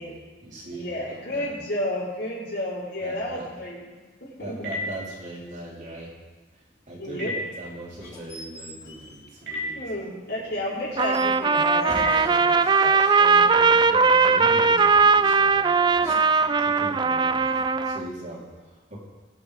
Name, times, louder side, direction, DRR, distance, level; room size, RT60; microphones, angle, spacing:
voice 1, 0.0-1.5 3.0-3.4 4.4-6.1 6.9-9.8 10.4-10.8 13.1-19.0, right 1 dB, 45° right, -4 dB, 3.2 m, -40 dB
voice 2, 0.7-3.9 4.2-4.7 7.0-7.3 9.7-12.5 12.8-13.0, left 1 dB, 65° left, -7 dB, 5.2 m, -31 dB
Telephone, 3.9-12.8, left 1 dB, 80° right, 5.4 m, -39 dB
sound 1, 7.9-9.9 10.9-14.0 15.8-17.8, left 1 dB, 20° left, 4.4 m, -43 dB
Trumpet, 11.0-18.1, right 4 dB, 25° right, 0.4 m, -19 dB
21.5 x 7.4 x 4.8 m, 1.3 s
head